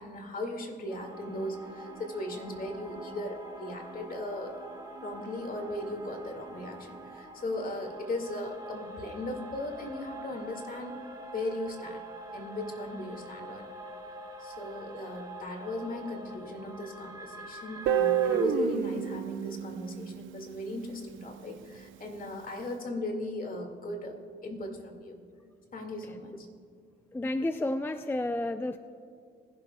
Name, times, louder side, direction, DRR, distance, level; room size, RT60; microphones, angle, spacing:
voice 1, 0.0-4.6 5.0-11.0 11.3-12.0 12.3-13.7 14.4-24.2 24.4-25.2 25.7-26.5, left 1 dB, 45° left, 3 dB, 1.9 m, -37 dB
sound 1, 0.9-18.4, right 1 dB, 20° right, 2.3 m, -45 dB
Guitar, 17.9-20.8, right 9 dB, 80° right, 0.6 m, -29 dB
voice 2, 27.1-28.8, left 1 dB, 10° left, 9 dB, 0.3 m, -31 dB
21.5 x 11.5 x 2.2 m, 2.4 s
cardioid pair, 90°, 20 cm